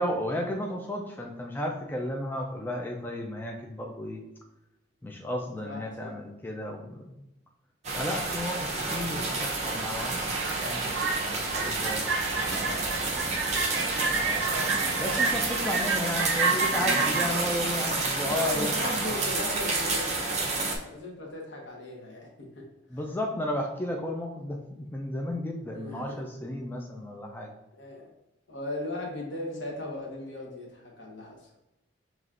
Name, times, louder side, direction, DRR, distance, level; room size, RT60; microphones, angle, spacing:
voice 1, 0.0-4.2 5.0-7.2 7.9-10.4 10.6-13.1 14.2-14.6 15.0-19.2 22.9-27.5, left 1 dB, 10° left, 0 dB, 0.3 m, -34 dB
voice 2, 5.6-6.1 18.2-22.6 25.7-26.2 27.7-28.1 28.5-31.5, left 2 dB, 75° left, -1 dB, 1.2 m, -38 dB
sound 1, 7.8-20.8, right 3 dB, 35° right, 0.7 m, -30 dB
sound 2, 10.3-17.3, right 4 dB, 85° right, 0.6 m, -30 dB
5.7 x 3.0 x 2.5 m, 0.92 s
head